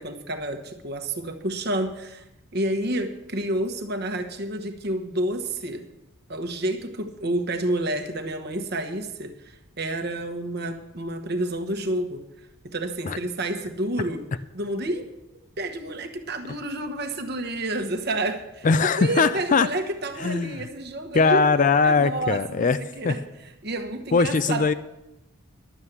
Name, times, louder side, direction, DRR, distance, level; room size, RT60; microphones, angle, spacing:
voice 1, 0.0-2.2 2.5-5.9 6.3-12.2 12.6-14.2 14.5-15.1 15.6-21.5 21.8-23.2 23.6-24.7, right 1 dB, 50° right, 6 dB, 1.1 m, -29 dB
voice 2, 18.6-19.7 20.2-20.5 21.1-22.8 23.0-23.1 24.1-24.7, left 4 dB, 35° left, 14 dB, 0.4 m, -20 dB
11.5 x 7.3 x 8.1 m, 0.92 s
head